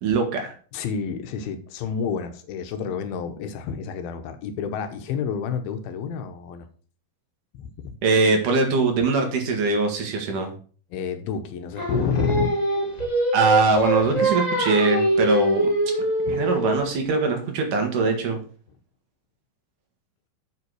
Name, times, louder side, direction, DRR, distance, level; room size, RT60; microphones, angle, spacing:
voice 1, 0.0-0.5 8.0-10.5 13.3-15.6 16.4-18.4, right 3 dB, 65° right, 2.9 m, -22 dB
voice 2, 0.7-6.7 7.5-8.0 10.9-12.5 14.0-14.1 16.2-16.5, left 6 dB, 80° left, 2.8 m, -29 dB
Singing, 11.8-17.0, right 1 dB, 45° left, 0.5 m, -24 dB
7.5 x 5.7 x 6.2 m
omnidirectional pair, 4.3 m